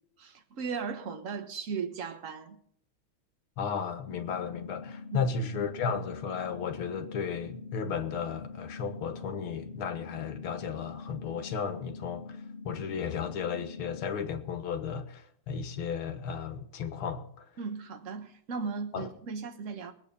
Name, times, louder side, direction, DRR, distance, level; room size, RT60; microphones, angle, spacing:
voice 1, 0.2-2.6 5.1-5.3 17.6-19.9, right 5 dB, 40° right, 1.5 m, -37 dB
voice 2, 3.6-17.5 18.9-19.1, left 6 dB, 80° left, 2.1 m, -34 dB
sound 1, 4.1-14.1, left 4 dB, 35° left, 2.1 m, -44 dB
20.5 x 8.6 x 5.4 m
omnidirectional pair, 2.3 m